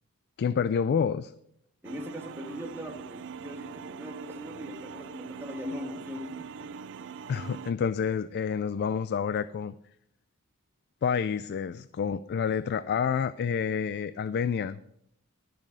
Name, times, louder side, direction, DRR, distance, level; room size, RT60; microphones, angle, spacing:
voice 1, 0.4-1.3 7.3-9.7 11.0-14.8, left 7 dB, 50° left, 14 dB, 0.3 m, -28 dB
voice 2, 1.8-7.0, left 1 dB, 10° right, 2 dB, 1.6 m, -40 dB
sound 1, 1.8-7.7, right 6 dB, 60° right, 0.5 m, -42 dB
12.0 x 7.3 x 5.0 m, 0.75 s
head